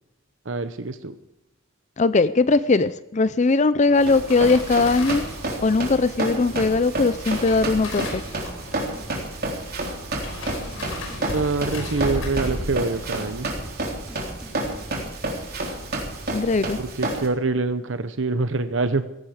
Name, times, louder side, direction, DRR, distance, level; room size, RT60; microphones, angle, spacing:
voice 1, 0.4-1.1 11.3-13.5 16.8-19.0, right 3 dB, 70° right, 10 dB, 0.9 m, -25 dB
voice 2, 2.0-5.2 5.6-8.2 16.3-16.8, left 3 dB, 35° left, 15 dB, 0.5 m, -20 dB
sound 1, 3.9-15.3 15.6-15.9 16.2-16.6 16.9-17.0, left 1 dB, 90° left, 5.4 m, -36 dB
Run, 4.0-17.3, right 2 dB, 50° right, 3.7 m, -30 dB
sound 2, 8.1-8.4 8.7-9.1 9.4-11.9 12.1-12.5 12.8-14.9, equal, 5° right, 2.5 m, -44 dB
17.0 x 15.0 x 4.9 m, 0.92 s
head